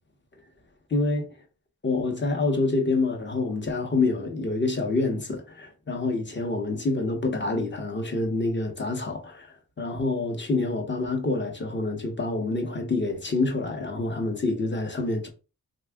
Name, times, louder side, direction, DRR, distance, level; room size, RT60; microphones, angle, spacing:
voice 1, 0.9-1.3 1.8-15.3, left 3 dB, 30° left, 0.8 m, -27 dB
3.5 x 2.3 x 3.4 m
wide cardioid pair, 105°, 38 cm